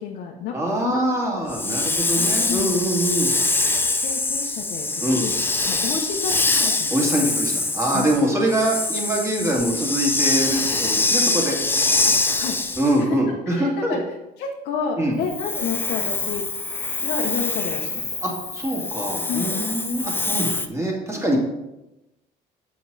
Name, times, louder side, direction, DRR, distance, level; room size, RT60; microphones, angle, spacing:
voice 1, 0.0-0.5 0.8-1.0 1.9-2.7 4.0-5.4 5.6-7.0 7.9-8.1 12.0-12.6 13.0-13.2 13.5-16.4 16.8-18.2 19.3-19.5, left 6 dB, 75° left, -1 dB, 1.0 m, -30 dB
voice 2, 0.5-3.3 5.0-5.3 6.9-11.6 12.8-14.0 15.0-15.2 18.2-21.4, right 1 dB, 15° right, -2 dB, 2.3 m, -24 dB
Hiss, 1.5-13.0 15.2-20.7, left 3 dB, 10° left, 0.5 m, -24 dB
7.8 x 6.2 x 4.1 m, 0.95 s
cardioid pair, 110°, 17 cm